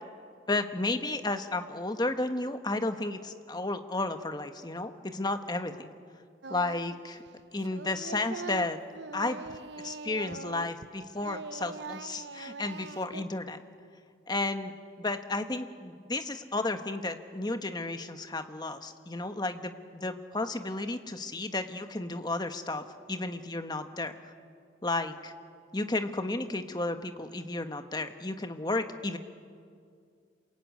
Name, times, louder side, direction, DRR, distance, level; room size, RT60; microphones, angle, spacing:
voice 1, 0.5-5.9 6.5-7.2 7.5-8.8 9.1-9.4 9.8-13.6 14.3-14.7 15.0-24.2 24.8-25.3 25.7-29.2, left 2 dB, 20° left, 8 dB, 1.2 m, -33 dB
Singing, 6.4-7.0 7.3-10.9 11.2-13.2, right 4 dB, 60° right, 0.7 m, -42 dB
27.0 x 22.5 x 9.5 m, 2.2 s
head